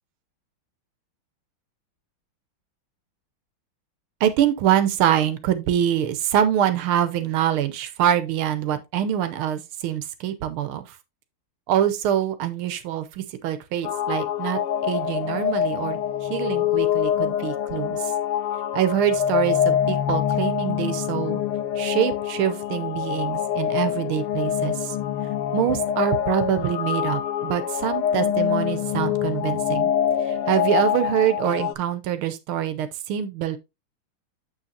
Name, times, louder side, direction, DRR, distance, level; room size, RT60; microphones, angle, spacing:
voice 1, 4.2-11.0 11.7-18.1 18.7-21.4 21.8-25.0 25.5-29.9 30.2-33.6, right 10 dB, 80° right, 1.6 m, -25 dB
sound 1, 13.8-31.7, left 9 dB, 85° left, 1.6 m, -25 dB
7.0 x 6.5 x 2.8 m
omnidirectional pair, 2.3 m